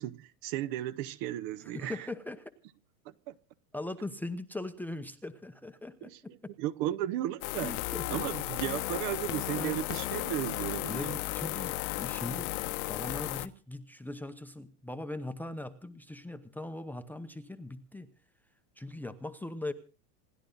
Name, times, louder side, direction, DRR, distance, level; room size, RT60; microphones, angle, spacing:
voice 1, 0.0-2.0 3.3-3.4 6.0-6.2 6.6-7.7 8.1-11.2, right 13 dB, 45° right, 0.9 m, -35 dB
voice 2, 1.6-2.5 3.7-6.5 7.6-8.2 9.5-9.8 10.9-12.5 12.9-18.1 18.8-19.7, left 2 dB, 5° left, 0.8 m, -40 dB
sound 1, 7.4-13.5, left 18 dB, 60° left, 1.2 m, -34 dB
27.5 x 11.5 x 3.9 m
supercardioid pair, 150°, 49 cm